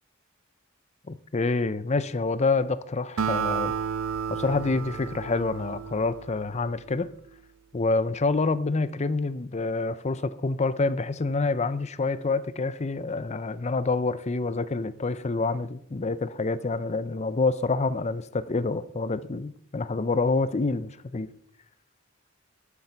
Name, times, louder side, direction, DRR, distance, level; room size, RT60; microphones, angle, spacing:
voice 1, 1.1-3.7 4.3-7.1 7.7-21.3, left 3 dB, 35° left, 0.6 m, -27 dB
Acoustic guitar, 3.2-6.8, right 7 dB, 85° right, 0.6 m, -31 dB
12.0 x 8.5 x 4.6 m
head